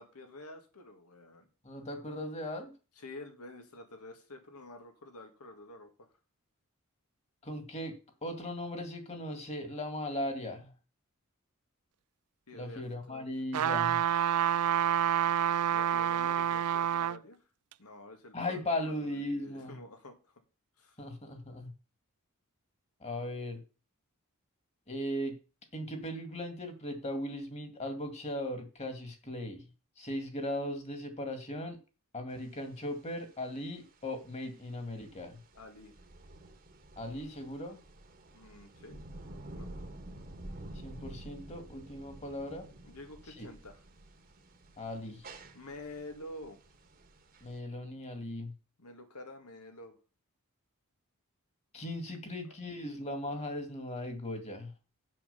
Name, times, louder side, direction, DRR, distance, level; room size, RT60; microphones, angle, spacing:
voice 1, 0.0-1.5 3.0-6.1 12.5-13.3 15.7-17.4 17.8-20.4 20.8-21.0 35.5-35.9 38.3-39.0 39.6-39.7 42.8-43.8 45.5-46.6 48.8-50.0, left 1 dB, 90° left, 6 dB, 2.1 m, -49 dB
voice 2, 1.6-2.7 7.4-7.9 8.2-10.7 12.5-14.0 18.3-19.8 21.0-21.7 23.0-23.6 24.9-25.3 25.7-29.6 30.0-31.8 32.1-35.4 37.0-37.8 40.8-42.6 43.4-43.5 44.8-45.3 47.4-48.5 51.7-54.7, left 1 dB, 30° left, 6 dB, 2.1 m, -38 dB
sound 1, 13.5-17.2 17.7-17.8, right 10 dB, 85° right, 0.4 m, -28 dB
sound 2, 32.3-47.6, right 1 dB, 40° right, 1.3 m, -50 dB
7.6 x 6.4 x 6.9 m, 0.34 s
head